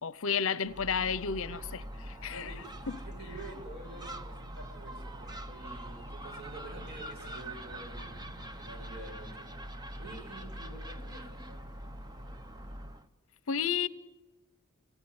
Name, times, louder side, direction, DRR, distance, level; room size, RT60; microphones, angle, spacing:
voice 1, 0.0-2.5 13.5-13.9, left 6 dB, 65° left, 0.7 m, -32 dB
Gull seagull, 0.6-13.1, right 1 dB, 20° right, 0.8 m, -43 dB
sound 1, 2.0-9.1, left 1 dB, 10° left, 5.0 m, -59 dB
voice 2, 2.2-9.5 10.0-11.6, right 2 dB, 50° right, 7.1 m, -48 dB
26.5 x 17.0 x 9.7 m
head